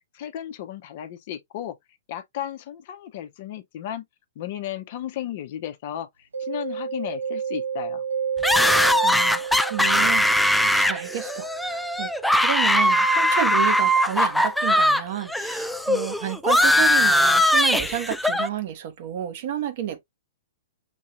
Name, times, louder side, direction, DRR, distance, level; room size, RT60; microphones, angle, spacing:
voice 1, 0.1-1.8 2.1-4.0 4.4-8.0, left 11 dB, 45° left, 0.7 m, -34 dB
Mallet percussion, 6.3-15.9, right 7 dB, 70° right, 0.5 m, -33 dB
sound 1, 8.4-15.0 15.3-18.5, left 1 dB, ahead, 0.3 m, -20 dB
voice 2, 8.7-12.1 12.4-20.0, right 11 dB, 45° right, 1.0 m, -31 dB
6.1 x 2.8 x 2.5 m
figure-of-eight pair, 110°, 0 cm